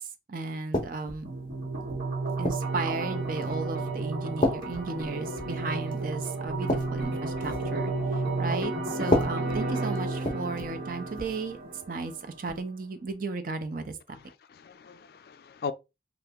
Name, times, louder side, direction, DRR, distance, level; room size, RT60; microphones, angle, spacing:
voice 1, 0.0-1.3 2.4-7.9 8.4-11.6 11.9-12.1 12.4-14.0, right 3 dB, 50° right, 0.5 m, -34 dB
sound 1, 0.7-1.3 1.9-2.8 3.4-3.7 4.4-5.6 5.9-6.1 6.4-7.8 9.0-10.8 11.1-11.4 12.5-12.6, left 1 dB, 25° left, 0.7 m, -31 dB
sound 2, 1.2-12.3, right 3 dB, 65° right, 1.2 m, -32 dB
voice 2, 14.1-15.7, left 5 dB, 55° left, 0.3 m, -39 dB
2.8 x 2.4 x 3.5 m
head